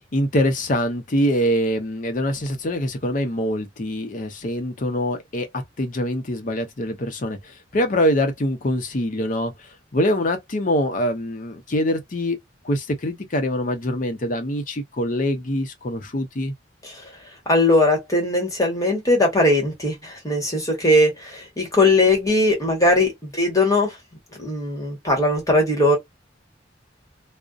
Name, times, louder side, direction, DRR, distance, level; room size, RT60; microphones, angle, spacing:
voice 1, 0.1-9.5 9.9-12.4 12.6-16.5, equal, 45° left, 0.6 m, -24 dB
voice 2, 17.5-24.0 24.4-26.0, left 2 dB, 20° left, 1.1 m, -19 dB
2.5 x 2.1 x 2.4 m
head